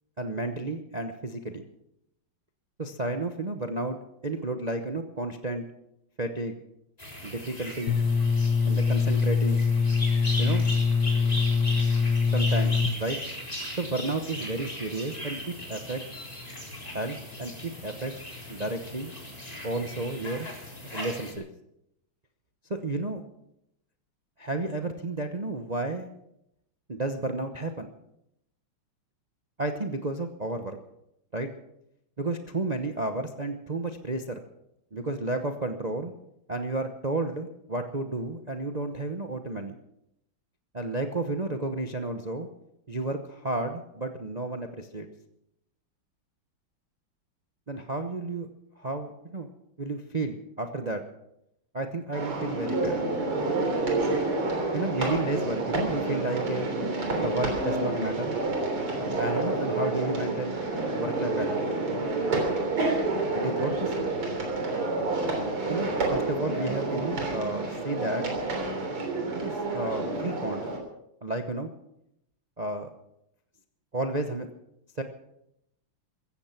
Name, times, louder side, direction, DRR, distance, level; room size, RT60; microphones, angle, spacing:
voice 1, 0.2-1.6 2.8-4.0 4.2-5.6 6.2-6.5 7.2-8.0 8.6-9.6 10.4-10.7 12.3-13.2 13.8-16.0 16.8-18.1 18.5-19.1 19.6-20.5 20.9-21.4 22.7-23.2 24.4-26.1 26.9-27.9 29.6-30.8 31.3-31.5 32.2-34.4 34.9-36.1 36.5-39.8 40.7-42.5 42.9-45.1 47.7-48.5 48.8-49.5 49.8-51.0 51.7-53.0 54.7-56.7 57.2-58.4 59.2-60.6 60.9-61.6 63.3-63.9 65.7-68.2 69.3-70.6 71.2-71.7 72.6-72.9 73.9-74.5 75.0-75.1, right 2 dB, 45° right, 6 dB, 0.5 m, -32 dB
sound 1, 7.0-21.3, equal, 15° left, 3.8 m, -38 dB
sound 2, 7.9-12.9, left 5 dB, 60° left, 1.6 m, -23 dB
sound 3, 52.1-70.8, right 2 dB, 80° right, 4.4 m, -29 dB
16.0 x 14.5 x 5.9 m, 0.81 s
omnidirectional pair, 2.4 m